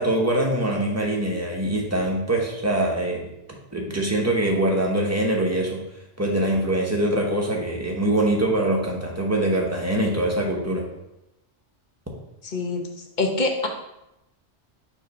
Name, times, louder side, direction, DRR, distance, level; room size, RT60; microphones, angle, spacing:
voice 1, 0.0-3.3 3.7-5.8 6.2-10.8, right 1 dB, 15° right, 0 dB, 0.9 m, -23 dB
voice 2, 12.4-12.8 13.2-13.7, left 3 dB, 45° left, 2 dB, 0.9 m, -24 dB
7.0 x 2.8 x 5.2 m, 0.89 s
omnidirectional pair, 1.2 m